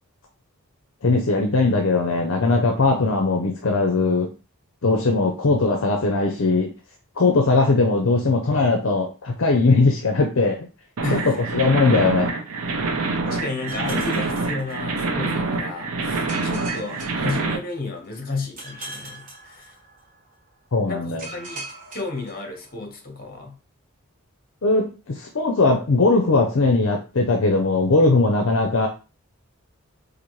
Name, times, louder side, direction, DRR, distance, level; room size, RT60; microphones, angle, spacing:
voice 1, 1.0-4.3 4.8-6.7 7.2-10.7 11.1-12.3 20.7-21.3 24.6-28.9, left 3 dB, 60° left, 3 dB, 0.5 m, -20 dB
voice 2, 11.0-11.4 13.3-19.7 20.9-23.6, left 3 dB, 40° left, 4 dB, 0.9 m, -32 dB
sound 1, 11.0-17.6, right 3 dB, 80° right, 0.6 m, -26 dB
sound 2, 13.7-15.3 16.3-18.0 18.6-20.2 21.2-22.9, right 2 dB, 35° right, 1.1 m, -40 dB
4.1 x 2.5 x 3.0 m, 0.32 s
head